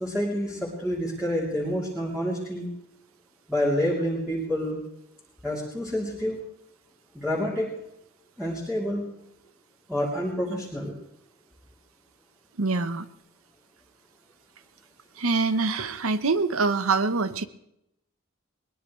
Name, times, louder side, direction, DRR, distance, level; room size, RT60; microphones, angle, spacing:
voice 1, 0.0-2.7 3.5-4.8 5.4-6.4 7.1-7.7 8.4-9.1 9.9-10.9, equal, 5° right, -5 dB, 3.3 m, -28 dB
voice 2, 12.6-13.1 15.2-17.4, right 4 dB, 75° right, 13 dB, 1.0 m, -25 dB
22.0 x 20.5 x 3.2 m, 0.79 s
head